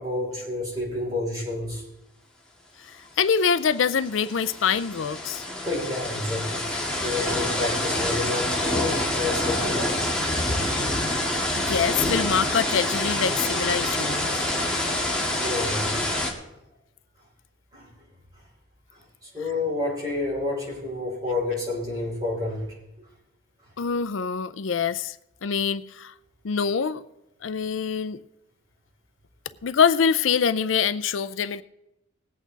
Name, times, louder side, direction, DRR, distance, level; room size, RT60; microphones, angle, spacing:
voice 1, 0.0-1.9 5.6-10.1 15.4-15.9 17.7-18.0 18.3-18.4 18.9-22.7, left 2 dB, 20° right, 6.0 m, -30 dB
voice 2, 2.8-5.5 11.5-14.4 23.8-25.2 25.4-26.1 26.4-27.0 27.4-28.2 29.6-31.6, left 6 dB, 80° left, 0.5 m, -25 dB
sound 1, 3.4-3.5 3.7-16.3, left 1 dB, 5° left, 2.0 m, -27 dB
20.0 x 8.5 x 4.0 m
head